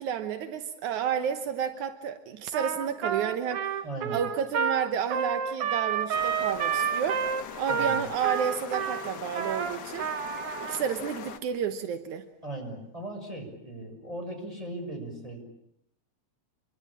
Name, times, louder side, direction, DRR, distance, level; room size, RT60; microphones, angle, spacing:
voice 1, 0.0-3.7 4.1-7.2 7.6-10.1 10.6-12.2, right 8 dB, 85° right, 9 dB, 2.6 m, -31 dB
Trumpet, 2.5-10.8, right 7 dB, 60° right, 2.0 m, -30 dB
voice 2, 3.8-4.2 7.7-8.0 12.4-15.5, right 2 dB, 10° right, 2 dB, 6.3 m, -38 dB
sound 1, 6.1-11.4, left 7 dB, 50° left, 1.4 m, -41 dB
27.5 x 23.5 x 8.8 m, 0.77 s
omnidirectional pair, 3.3 m